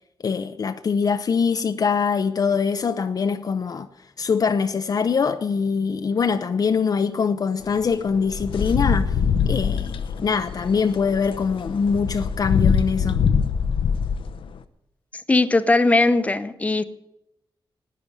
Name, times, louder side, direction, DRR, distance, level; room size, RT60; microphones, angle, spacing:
voice 1, 0.2-3.9 4.2-9.2 9.5-13.2, left 5 dB, 45° left, 0.6 m, -23 dB
sound 1, 7.6-14.6, left 6 dB, 80° left, 0.7 m, -24 dB
voice 2, 15.3-16.8, left 2 dB, 15° left, 0.8 m, -19 dB
12.5 x 9.4 x 10.0 m
wide cardioid pair, 140°, 9 cm